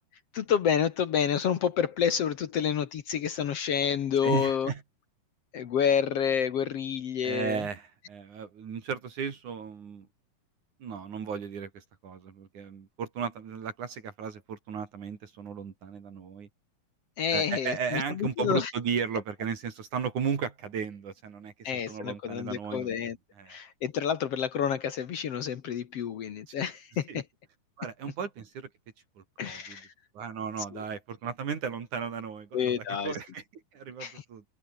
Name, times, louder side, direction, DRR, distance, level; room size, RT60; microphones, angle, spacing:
voice 1, 0.3-4.7 5.5-7.6 17.2-18.7 21.6-23.2 23.5-27.2 29.4-29.9 32.5-33.2 34.0-34.1, left 8 dB, 55° left, 1.9 m, -29 dB
voice 2, 4.2-4.8 7.2-10.1 10.8-16.5 17.3-23.0 23.4-23.6 26.5-26.6 27.1-27.2 27.8-28.7 29.2-29.8 30.1-33.4 33.7-34.4, right 6 dB, 60° right, 4.1 m, -35 dB
omnidirectional pair, 4.0 m